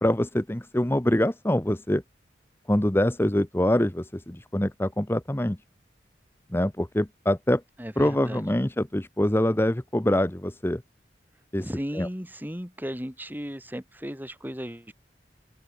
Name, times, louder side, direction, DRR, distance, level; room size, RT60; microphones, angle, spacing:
voice 1, 0.0-2.0 2.7-5.6 6.5-7.6 8.0-10.8 11.5-11.7 11.9-12.1, left 1 dB, 15° left, 0.9 m, -24 dB
voice 2, 7.8-8.5 11.6-14.9, equal, 10° right, 4.1 m, -35 dB
open air
head